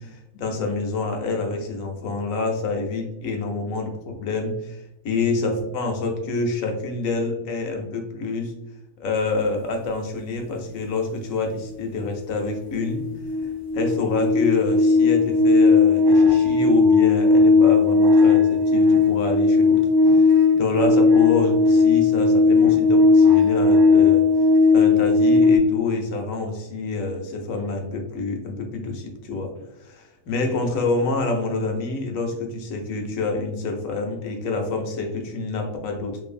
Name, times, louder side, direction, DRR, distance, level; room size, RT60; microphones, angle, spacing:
voice 1, 0.0-8.5 9.0-13.1 13.7-19.8 20.1-24.2 24.7-29.5 29.8-36.2, left 3 dB, 75° left, 3 dB, 1.0 m, -27 dB
sound 1, 12.0-12.1 12.4-25.6, left 4 dB, 85° right, 0.4 m, -17 dB
2.7 x 2.6 x 2.4 m, 0.90 s
omnidirectional pair, 1.4 m